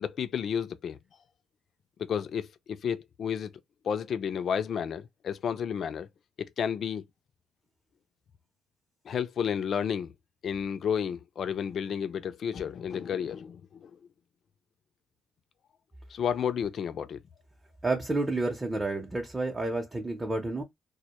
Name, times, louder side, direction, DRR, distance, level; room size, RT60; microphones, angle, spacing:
voice 1, 0.0-1.0 2.0-3.5 3.8-6.1 6.6-7.0 9.1-10.1 10.4-13.9 16.1-17.2, left 7 dB, 60° left, 0.3 m, -31 dB
voice 2, 17.8-20.6, right 2 dB, 20° right, 0.6 m, -30 dB
2.1 x 2.1 x 2.8 m
cardioid pair, 90°, 0 cm